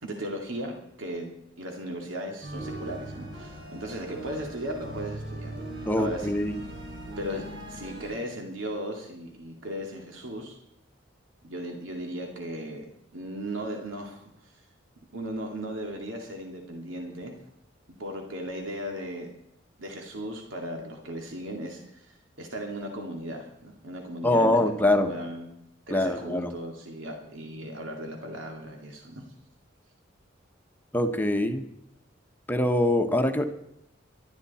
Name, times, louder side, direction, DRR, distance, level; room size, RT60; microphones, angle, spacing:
voice 1, 0.0-6.3 7.2-10.6 11.4-12.8 13.1-14.5 15.1-17.3 17.9-19.3 19.8-25.5 25.9-29.2, right 1 dB, 80° right, 2 dB, 2.4 m, -37 dB
sound 1, 2.4-8.1, right 1 dB, 65° right, 4.7 m, -39 dB
voice 2, 5.9-6.5 24.2-25.1 25.9-26.5 30.9-31.6 32.5-33.5, left 1 dB, 10° left, 6 dB, 1.1 m, -23 dB
18.5 x 13.0 x 4.2 m, 0.80 s
head